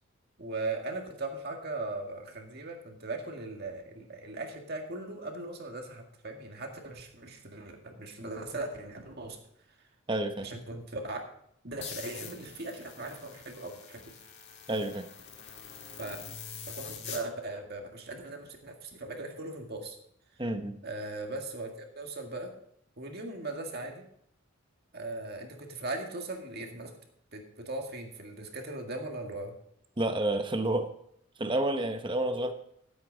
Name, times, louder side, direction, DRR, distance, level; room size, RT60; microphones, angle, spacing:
voice 1, 0.4-9.4 10.4-11.2 11.6-14.0 16.0-16.2 16.7-20.0 20.3-20.4 20.8-22.5 23.0-24.1 24.9-26.9 27.3-29.5, right 2 dB, 50° right, 3 dB, 1.8 m, -39 dB
voice 2, 10.1-10.5 14.7-15.1 20.4-20.8 30.0-30.9 31.4-32.5, right 1 dB, 20° right, 8 dB, 0.9 m, -29 dB
sound 1, 11.8-17.2, left 7 dB, 55° left, 1.6 m, -45 dB
13.5 x 8.1 x 3.9 m, 0.71 s
head